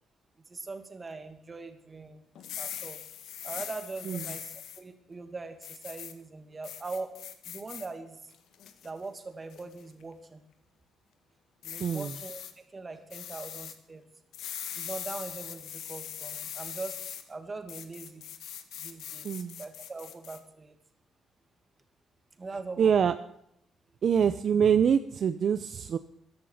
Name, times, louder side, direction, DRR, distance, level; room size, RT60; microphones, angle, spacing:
voice 1, 0.4-3.0 3.4-7.2 7.4-8.3 8.8-10.4 11.6-12.4 12.7-14.0 14.7-18.2 18.8-19.3 19.6-20.8 22.4-22.9, right 3 dB, 30° right, 7 dB, 2.3 m, -41 dB
sound 1, 2.4-4.8 5.6-6.1 6.6-7.9 8.3-8.9 9.5-9.8 11.6-12.5 13.1-13.7 14.3-17.2 17.7-20.4, left 10 dB, 80° left, 1.6 m, -41 dB
voice 2, 11.8-12.1 19.2-19.6 22.8-23.1 24.0-26.0, right 7 dB, 55° right, 11 dB, 0.7 m, -25 dB
15.0 x 11.5 x 6.6 m, 0.76 s
cardioid pair, 90°, 0 cm